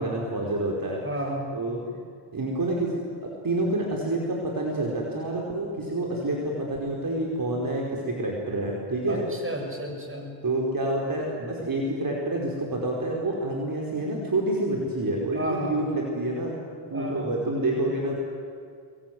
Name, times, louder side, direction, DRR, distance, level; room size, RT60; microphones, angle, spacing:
voice 1, 0.0-1.0 1.5-2.0 2.3-3.0 3.4-9.2 10.4-16.6 16.9-18.1, right 1 dB, 40° right, -1 dB, 5.2 m, -28 dB
voice 2, 1.0-1.5 9.1-10.3 15.3-15.8 16.9-17.4, right 1 dB, 25° right, 3 dB, 7.0 m, -32 dB
25.0 x 22.0 x 9.7 m, 2.1 s
cardioid pair, 75°, 49 cm